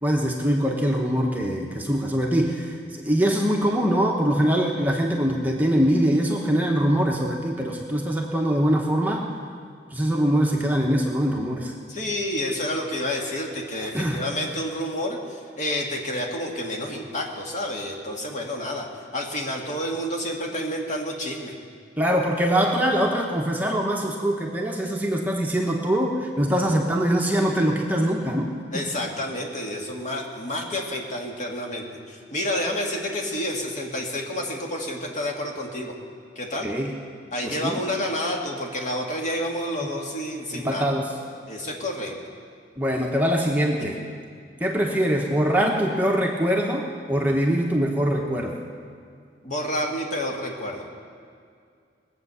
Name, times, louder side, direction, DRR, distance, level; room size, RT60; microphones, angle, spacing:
voice 1, 0.0-9.2 9.9-11.7 13.9-14.2 22.0-28.8 36.6-36.9 37.4-37.8 40.5-41.1 42.8-44.0 44.6-48.5, equal, 10° right, 0 dB, 1.0 m, -23 dB
voice 2, 11.9-18.9 19.1-21.5 28.7-35.9 36.4-36.7 37.3-40.9 41.5-42.2 43.8-44.1 49.4-50.8, left 1 dB, 40° left, 0 dB, 2.0 m, -29 dB
20.0 x 8.1 x 6.9 m, 2.3 s
head